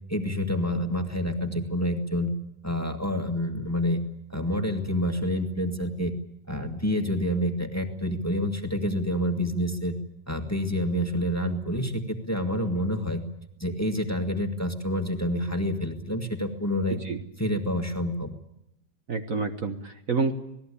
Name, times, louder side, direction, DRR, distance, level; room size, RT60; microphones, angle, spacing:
voice 1, 0.1-2.3 2.6-4.0 4.3-6.1 6.5-10.0 10.3-13.2 13.6-17.0 17.4-18.3, equal, 10° left, 4 dB, 1.9 m, -28 dB
voice 2, 19.1-20.3, right 4 dB, 50° right, 6 dB, 1.6 m, -28 dB
27.0 x 19.5 x 8.6 m, 0.83 s
omnidirectional pair, 1.9 m